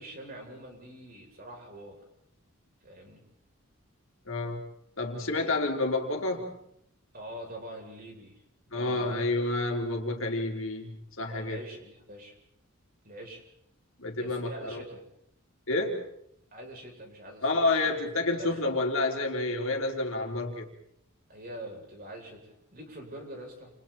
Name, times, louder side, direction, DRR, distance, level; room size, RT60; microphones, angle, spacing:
voice 1, 0.0-2.0 2.8-3.2 5.2-5.5 7.1-9.4 11.2-12.4 13.0-13.4 14.1-15.0 16.5-17.9 18.4-18.7 21.3-23.7, right 1 dB, 40° right, 0 dB, 7.5 m, -44 dB
voice 2, 4.3-4.6 5.0-6.6 8.7-11.6 14.0-14.8 15.7-16.0 17.4-20.7, left 2 dB, 60° left, 2 dB, 3.9 m, -29 dB
30.0 x 29.0 x 4.4 m, 0.73 s
head